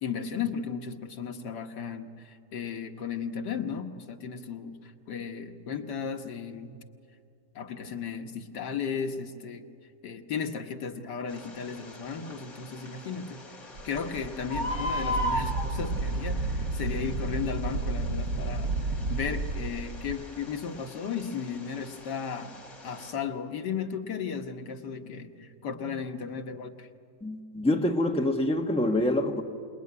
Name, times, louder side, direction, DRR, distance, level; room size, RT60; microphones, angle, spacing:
voice 1, 0.0-6.8 7.6-9.6 10.0-13.4 13.8-22.6 22.8-26.9, left 6 dB, 90° left, 5 dB, 1.9 m, -35 dB
Bird, 11.3-23.1, left 1 dB, 55° left, 3.3 m, -39 dB
Wind, 13.8-20.2, right 3 dB, 90° right, 1.7 m, -32 dB
voice 2, 27.2-29.4, left 1 dB, 5° left, 3 dB, 1.1 m, -26 dB
27.0 x 21.0 x 9.6 m, 2.4 s
omnidirectional pair, 1.8 m